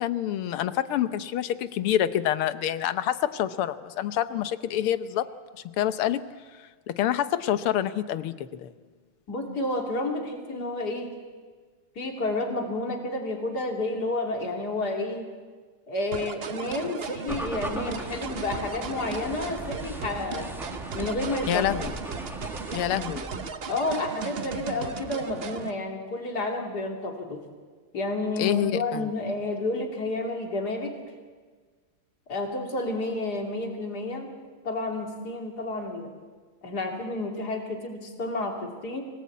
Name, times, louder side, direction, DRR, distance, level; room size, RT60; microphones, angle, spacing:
voice 1, 0.0-5.3 5.8-6.2 6.9-8.7 21.5-21.9 22.7-23.3 28.4-29.1, left 11 dB, 85° left, 12 dB, 1.8 m, -27 dB
voice 2, 9.3-11.2 12.0-15.3 15.9-20.5 20.9-21.6 23.7-27.4 27.9-30.9 32.3-34.3 34.6-36.1 36.6-39.0, left 2 dB, 45° left, 2 dB, 3.3 m, -30 dB
sound 1, 16.1-25.7, right 6 dB, 50° right, 0.7 m, -36 dB
sound 2, 17.3-23.5, equal, ahead, 0.9 m, -38 dB
24.5 x 18.0 x 8.4 m, 1.5 s
omnidirectional pair, 2.4 m